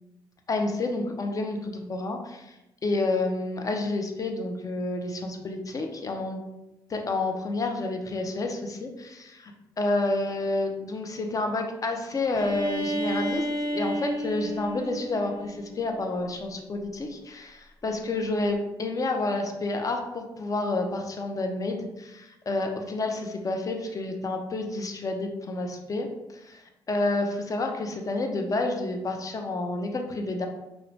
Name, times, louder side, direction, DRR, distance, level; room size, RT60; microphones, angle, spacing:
voice 1, 0.5-2.5 2.8-6.4 6.9-13.5 13.7-26.1 26.4-26.6 26.9-30.5, left 2 dB, 35° left, 4 dB, 0.5 m, -29 dB
Bowed string instrument, 12.3-16.1, right 1 dB, 55° left, 1.4 m, -32 dB
2.4 x 2.0 x 3.1 m, 0.95 s
supercardioid pair, 60°, 10 cm